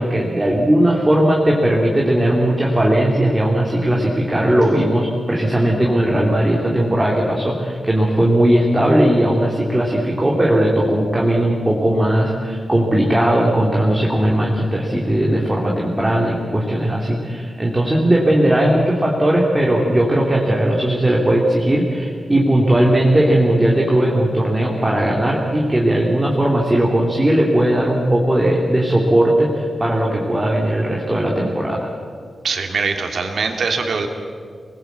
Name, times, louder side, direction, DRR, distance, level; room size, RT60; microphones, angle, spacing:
voice 1, 0.0-31.9, right 1 dB, 15° right, -2 dB, 2.7 m, -17 dB
voice 2, 32.4-34.1, right 4 dB, 60° right, 4 dB, 2.9 m, -22 dB
28.0 x 20.5 x 8.1 m, 2.2 s
wide cardioid pair, 175°, 0 cm